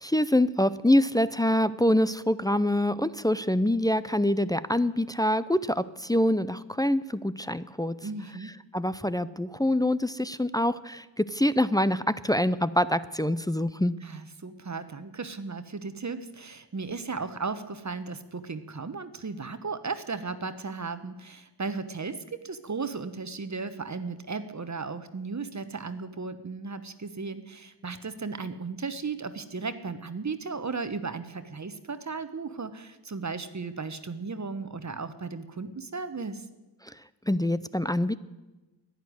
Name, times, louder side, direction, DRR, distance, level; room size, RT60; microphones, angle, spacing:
voice 1, 0.0-8.0 8.7-13.9 36.8-37.0 37.3-38.2, left 1 dB, 10° left, 14 dB, 0.5 m, -25 dB
voice 2, 8.0-8.6 14.0-36.4, right 4 dB, 40° right, 11 dB, 1.0 m, -35 dB
11.0 x 10.5 x 9.4 m, 1.1 s
wide cardioid pair, 65°, 43 cm